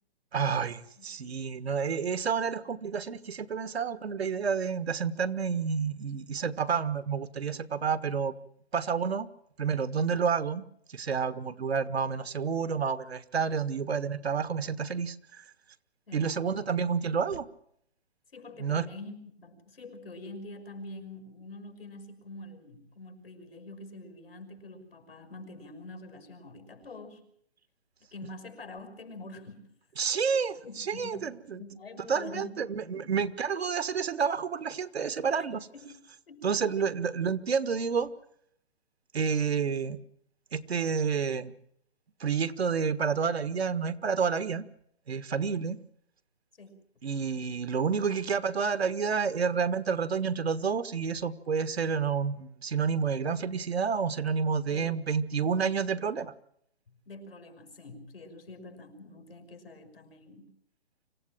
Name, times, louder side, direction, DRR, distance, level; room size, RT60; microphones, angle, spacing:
voice 1, 0.3-8.3 8.7-9.3 9.6-15.4 16.1-17.5 18.6-18.9 30.0-31.6 32.1-35.7 36.4-38.1 39.1-40.0 40.5-41.5 42.2-44.6 45.1-45.8 47.0-56.3, right 6 dB, 80° right, 15 dB, 1.5 m, -29 dB
voice 2, 1.0-1.4 16.1-16.3 18.3-27.2 28.1-29.7 30.6-32.5 32.9-33.2 35.7-36.0 36.3-36.9 46.6-46.8 54.7-54.9 57.1-60.5, left 2 dB, 70° left, 7 dB, 5.8 m, -46 dB
25.5 x 15.5 x 7.6 m, 0.70 s
hypercardioid pair, 180°, 31 cm